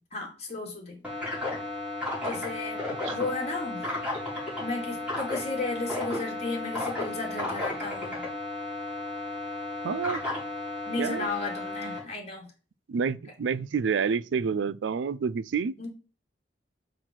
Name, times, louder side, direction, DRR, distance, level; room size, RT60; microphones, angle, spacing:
voice 1, 0.1-1.0 2.2-3.8 4.6-8.2 10.9-12.5 15.8-15.9, left 3 dB, 35° left, 2.4 m, -34 dB
sound 1, 1.0-12.0, left 2 dB, 10° right, 3.9 m, -34 dB
voice 2, 9.8-10.2 11.0-11.3 12.9-15.7, right 6 dB, 80° right, 0.4 m, -28 dB
5.8 x 4.7 x 6.1 m
head